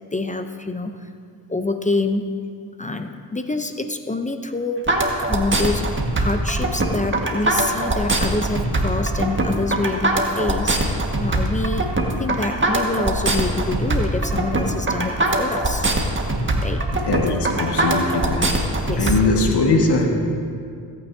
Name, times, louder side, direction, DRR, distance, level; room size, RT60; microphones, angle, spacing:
voice 1, 0.1-1.1 1.5-2.3 2.8-4.9 5.3-15.9 16.4-16.9 18.9-19.2, left 2 dB, 20° left, 7 dB, 0.7 m, -26 dB
sound 1, 4.9-19.1, right 2 dB, 30° right, 1.7 m, -21 dB
voice 2, 17.0-18.5 19.0-20.1, left 3 dB, 70° left, 1 dB, 1.8 m, -20 dB
17.5 x 9.1 x 2.8 m, 2.3 s
supercardioid pair, 55°, 41 cm